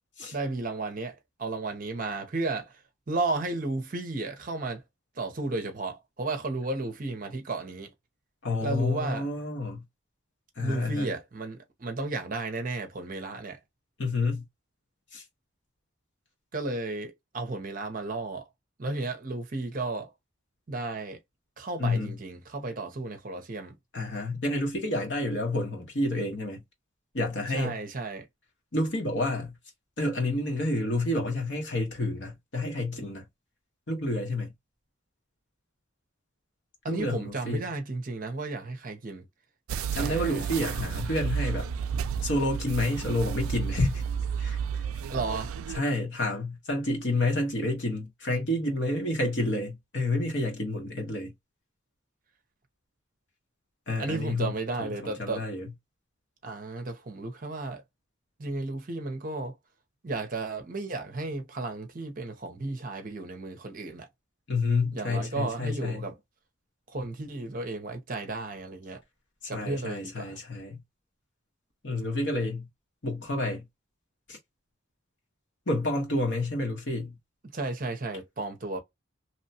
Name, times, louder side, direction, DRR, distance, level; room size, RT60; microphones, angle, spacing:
voice 1, 0.3-2.8 3.1-4.8 5.2-7.9 8.6-9.3 10.6-13.6 16.5-18.4 18.8-20.1 20.7-21.2 21.6-23.8 27.5-28.3 36.8-39.2 40.0-40.5 45.1-45.6 54.0-55.5 56.4-57.8 58.4-59.5 60.0-64.1 64.9-66.2 66.9-69.0 69.5-70.4 77.4-78.8, right 3 dB, 40° right, 0.6 m, -33 dB
voice 2, 8.4-9.8 10.6-11.1 14.0-14.4 15.1-15.2 21.8-22.1 23.9-26.6 27.1-27.8 28.7-29.5 30.0-33.2 33.9-34.5 36.9-37.6 39.9-41.7 42.2-44.0 44.4-44.6 45.7-51.3 53.9-54.5 54.8-55.7 64.5-66.1 69.4-70.8 71.8-72.7 73.0-73.6 74.3-74.4 75.7-77.1, left 2 dB, 60° left, 1.2 m, -29 dB
sound 1, 39.7-45.8, right 7 dB, 85° right, 0.3 m, -32 dB
2.9 x 2.2 x 2.7 m
head